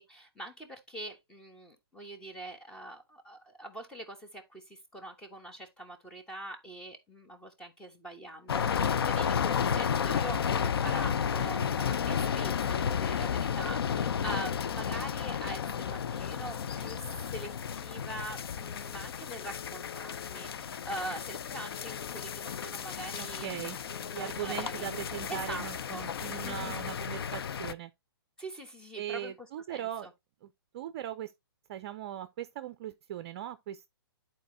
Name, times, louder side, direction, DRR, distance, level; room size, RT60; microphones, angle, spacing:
voice 1, 0.0-17.0 17.3-23.5 23.9-24.9 25.3-26.1 26.4-26.8 28.4-30.1, right 1 dB, 5° left, 1.2 m, -43 dB
sound 1, 8.5-27.7, left 7 dB, 70° left, 0.5 m, -32 dB
Telephone, 19.4-20.5 21.6-22.7 23.9-25.0 26.2-27.3, left 17 dB, 40° left, 1.6 m, -51 dB
voice 2, 23.2-23.8 24.1-27.9 29.0-30.1 30.4-31.3 31.7-33.9, right 11 dB, 40° right, 0.5 m, -39 dB
11.0 x 4.3 x 2.7 m
hypercardioid pair, 145°, 13 cm